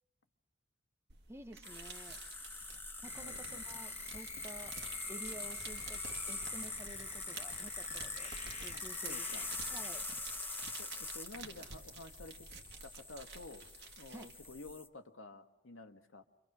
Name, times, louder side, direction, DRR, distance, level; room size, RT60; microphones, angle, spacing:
sound 1, 1.1-14.7, right 4 dB, 60° right, 1.9 m, -51 dB
voice 1, 1.3-2.2 3.0-4.8 5.1-8.3 8.6-9.3 9.7-10.0 14.1-14.3, right 1 dB, 15° right, 8 dB, 1.0 m, -51 dB
sound 2, 1.6-14.9, left 3 dB, 10° left, 1.2 m, -44 dB
sound 3, 3.0-9.9, left 4 dB, 35° left, 1.3 m, -51 dB
voice 2, 3.1-3.6 8.7-9.5 10.8-12.5 12.8-13.6 14.0-16.2, left 2 dB, 75° left, 5 dB, 1.6 m, -51 dB
29.5 x 25.0 x 6.1 m, 0.89 s
head